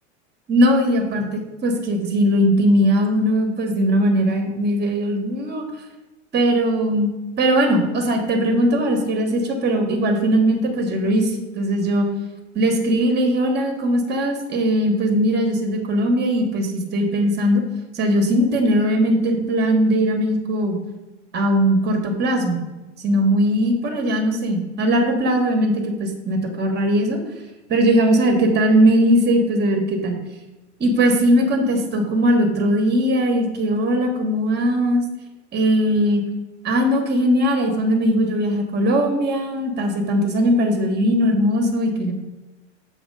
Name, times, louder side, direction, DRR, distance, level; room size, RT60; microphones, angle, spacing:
voice 1, 0.5-5.6 6.3-7.1 7.4-12.1 12.5-17.6 17.9-20.8 21.3-22.6 23.0-27.2 27.7-30.2 30.8-35.0 35.5-36.2 36.6-42.1, equal, 30° right, 4 dB, 1.2 m, -19 dB
7.0 x 3.0 x 5.4 m, 1.1 s
hypercardioid pair, 110°, 36 cm